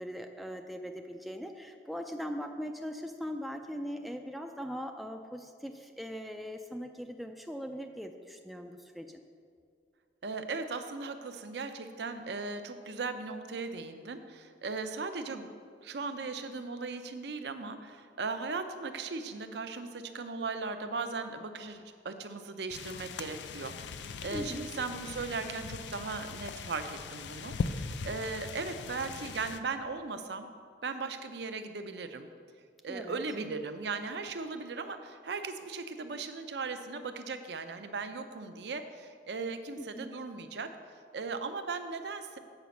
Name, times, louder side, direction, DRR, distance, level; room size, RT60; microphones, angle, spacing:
voice 1, 0.0-9.2 24.3-24.7 32.9-33.2 39.8-40.1, equal, ahead, 3 dB, 0.3 m, -40 dB
voice 2, 10.2-15.5 15.8-30.5 30.8-32.3 32.8-40.7 41.1-42.4, right 4 dB, 70° right, 8 dB, 0.6 m, -38 dB
sound 1, 22.7-29.6, left 5 dB, 80° left, 0.4 m, -40 dB
7.8 x 5.1 x 7.0 m, 2.2 s
head